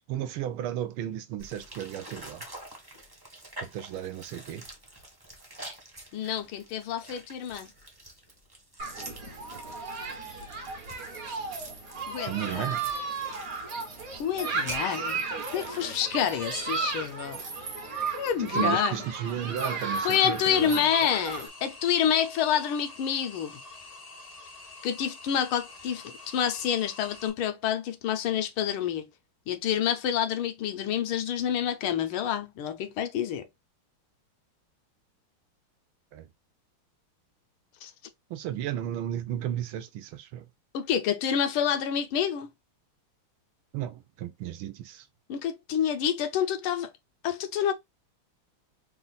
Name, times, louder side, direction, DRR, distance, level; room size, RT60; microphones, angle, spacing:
voice 1, 0.1-2.5 3.6-4.7 12.3-12.9 18.4-20.8 36.1-36.3 38.3-40.5 43.7-45.1, right 11 dB, 80° right, 1.5 m, -34 dB
sound 1, 1.4-17.4, right 1 dB, 15° right, 0.7 m, -48 dB
voice 2, 6.1-7.7 12.1-12.7 14.2-15.2 15.5-17.8 18.1-19.0 20.0-23.6 24.8-29.0 29.5-33.5 37.8-37.9 40.7-42.5 45.3-46.9 47.2-47.7, left 9 dB, 80° left, 1.5 m, -28 dB
Human group actions, 8.8-21.5, right 4 dB, 50° right, 1.2 m, -34 dB
sound 2, 20.5-27.3, left 3 dB, 50° left, 0.4 m, -47 dB
4.0 x 2.4 x 3.9 m
omnidirectional pair, 2.4 m